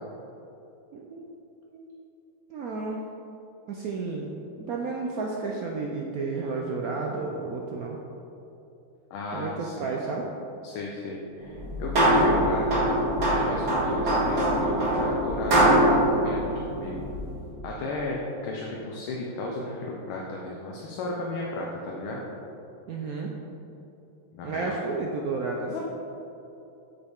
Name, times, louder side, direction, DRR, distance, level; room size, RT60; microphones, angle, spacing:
voice 1, 0.9-1.3 1.7-1.9 2.5-3.0 3.7-4.3 4.6-8.0 9.3-10.3 22.9-23.3 24.4-25.8, right 4 dB, 80° right, -1 dB, 0.8 m, -32 dB
voice 2, 9.1-9.9 10.6-17.0 17.6-18.2 18.4-22.2 24.3-24.7 25.7-25.8, left 2 dB, 85° left, -2 dB, 1.7 m, -34 dB
sound 1, 11.5-17.4, right 1 dB, 50° right, 2.5 m, -23 dB
8.0 x 7.0 x 3.6 m, 2.9 s
omnidirectional pair, 2.3 m